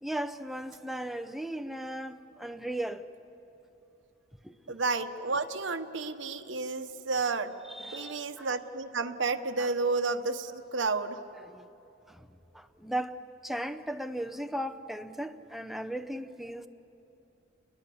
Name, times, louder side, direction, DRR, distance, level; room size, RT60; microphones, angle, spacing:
voice 1, 0.0-3.1 4.4-4.8 7.6-8.5 9.6-9.7 11.3-11.7 12.1-12.3 12.5-16.7, right 1 dB, ahead, 0.7 m, -37 dB
voice 2, 4.7-7.5 7.9-11.2, right 3 dB, 75° right, 1.1 m, -31 dB
29.0 x 21.0 x 7.2 m
head